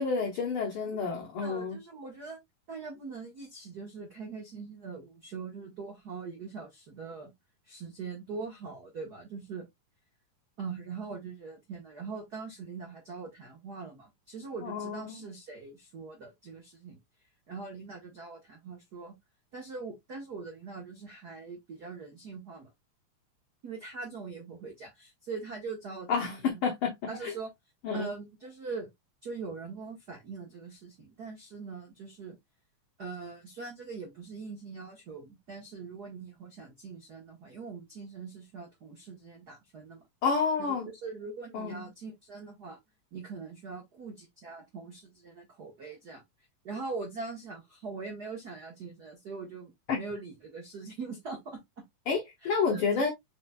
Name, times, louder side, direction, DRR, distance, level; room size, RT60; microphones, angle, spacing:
voice 1, 0.0-1.8 14.6-15.3 26.1-26.9 27.2-27.3 27.8-28.1 40.2-40.9 41.5-41.8 49.9-50.0 52.1-53.1, left 5 dB, 65° left, 1.3 m, -29 dB
voice 2, 1.4-2.4 2.7-7.3 7.7-9.7 10.6-17.0 17.5-19.1 19.5-22.7 23.6-26.6 27.1-27.5 27.9-28.9 29.2-32.4 33.0-40.0 40.6-42.8 43.1-46.2 46.6-51.6 52.4-53.1, right 4 dB, 80° right, 0.8 m, -42 dB
5.0 x 4.4 x 2.2 m
omnidirectional pair, 3.7 m